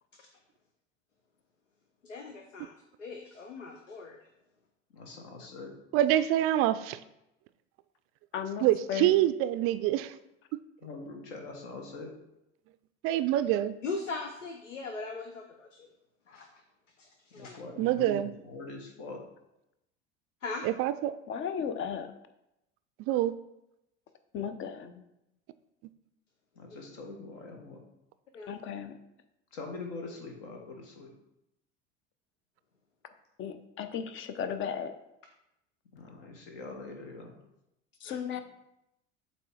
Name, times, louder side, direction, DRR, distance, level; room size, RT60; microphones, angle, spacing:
voice 1, 2.0-4.2 13.8-15.9 16.3-16.5 17.0-17.6 20.4-20.7 26.7-26.8 28.3-28.5 38.0-38.2, left 3 dB, 90° left, 6 dB, 0.6 m, -40 dB
voice 2, 4.9-5.7 10.8-12.1 17.3-19.2 26.5-27.8 29.5-31.1 35.9-37.4, left 3 dB, 60° left, 2 dB, 1.5 m, -43 dB
voice 3, 5.9-7.0 8.6-10.1 13.0-13.7 17.8-18.3 20.6-21.2 23.0-23.3, right 13 dB, 40° right, 13 dB, 0.4 m, -26 dB
voice 4, 8.3-9.1 21.3-22.1 24.3-25.0 28.5-29.0 33.4-34.9 38.0-38.4, left 7 dB, 35° left, 10 dB, 0.7 m, -35 dB
7.7 x 3.0 x 4.7 m, 0.86 s
figure-of-eight pair, 75°, 36 cm